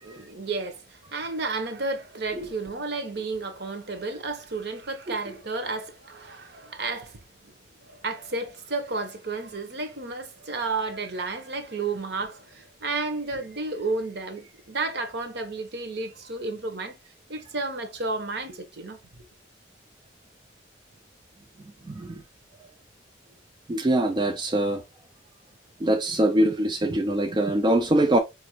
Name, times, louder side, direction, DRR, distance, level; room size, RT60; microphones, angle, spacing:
voice 1, 0.0-7.2 7.8-17.0 17.3-19.0, right 3 dB, 55° right, 0.8 m, -32 dB
voice 2, 21.9-22.2 23.7-24.8 25.8-28.2, right 1 dB, 25° right, 0.3 m, -23 dB
5.0 x 2.5 x 2.9 m
head